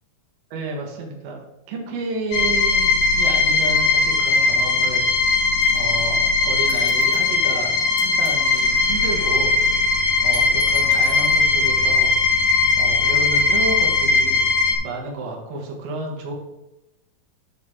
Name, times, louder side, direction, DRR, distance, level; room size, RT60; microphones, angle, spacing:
voice 1, 0.5-1.4 1.7-5.1 5.7-9.5 10.2-12.1 12.7-14.4 14.8-16.3, right 2 dB, 75° right, 0 dB, 3.2 m, -31 dB
sound 1, 2.3-14.8, left 4 dB, 70° left, 2.4 m, -19 dB
sound 2, 5.6-5.9 6.7-7.3 8.0-9.2 10.3-11.4, right 4 dB, 55° right, 2.1 m, -39 dB
12.5 x 4.7 x 3.7 m, 0.93 s
omnidirectional pair, 4.4 m